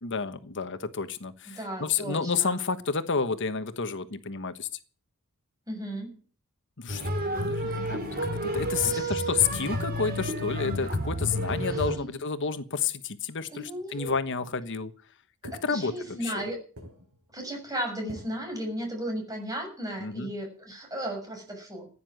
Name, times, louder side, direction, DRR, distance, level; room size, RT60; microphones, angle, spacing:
voice 1, 0.0-4.7 6.8-7.0 7.3-14.9 15.6-16.5 20.0-20.3, left 5 dB, 60° left, 10 dB, 1.2 m, -30 dB
voice 2, 1.5-2.6 5.7-6.2 7.7-7.9 8.8-9.3 11.6-12.2 13.5-14.1 15.4-16.6 17.3-21.9, right 1 dB, 15° right, 2 dB, 7.1 m, -35 dB
sound 1, 6.9-12.0, equal, 45° right, 4.6 m, -30 dB
sound 2, 14.1-14.9 15.4-16.5 16.8-17.3 18.1-18.6, equal, 85° right, 6.3 m, -46 dB
15.5 x 9.9 x 7.7 m, 0.42 s
head